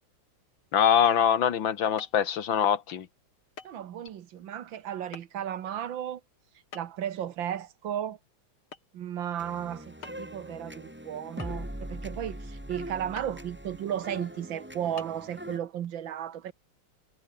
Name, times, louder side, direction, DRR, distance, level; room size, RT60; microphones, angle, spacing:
voice 1, 0.7-3.1, left 8 dB, 70° left, 2.1 m, -23 dB
sound 1, 2.0-2.2 3.6-3.8 4.1-4.2 5.1-5.2 6.7-7.1 8.7-9.0 9.3-9.4 10.0-10.4 11.4-11.9 13.2-13.4 14.0-14.1 15.0-15.1, left 6 dB, 85° left, 3.5 m, -45 dB
voice 2, 3.6-6.2 6.7-8.2 8.9-16.5, right 10 dB, 70° right, 1.8 m, -34 dB
sound 2, 9.4-15.6, equal, 5° right, 3.7 m, -41 dB
omnidirectional pair, 2.3 m